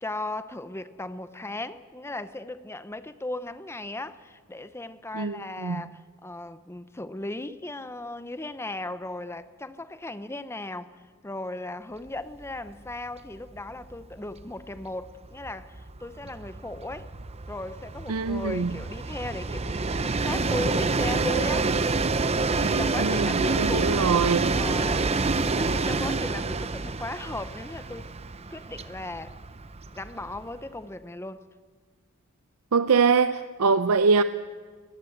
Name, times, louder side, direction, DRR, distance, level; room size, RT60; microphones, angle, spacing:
voice 1, 0.0-17.1 17.5-21.7 22.6-24.0 24.5-25.1 25.6-28.1 28.5-29.4 29.9-31.5, left 2 dB, 10° left, 0.7 m, -37 dB
voice 2, 5.1-5.8 18.1-18.7 22.6-24.6 32.7-34.2, right 5 dB, 70° right, 0.6 m, -23 dB
Train, 12.4-12.6 12.9-13.0 13.3-30.7, right 3 dB, 30° right, 0.7 m, -28 dB
23.5 x 19.5 x 7.9 m
head